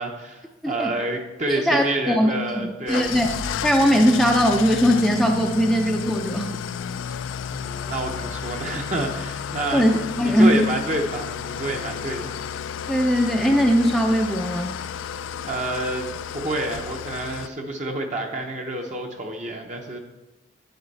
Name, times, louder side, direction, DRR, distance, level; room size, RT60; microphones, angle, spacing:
voice 1, 0.0-3.2 7.1-7.2 7.5-12.3 15.4-16.1 16.3-20.0, right 2 dB, 35° right, 2 dB, 0.7 m, -28 dB
voice 2, 1.5-3.3 3.6-6.5 9.7-10.6 12.9-14.7, equal, ahead, 2 dB, 0.4 m, -20 dB
Engine starting / Idling, 2.9-17.5, left 7 dB, 75° left, 0.3 m, -32 dB
9.5 x 7.9 x 4.1 m, 1.1 s
head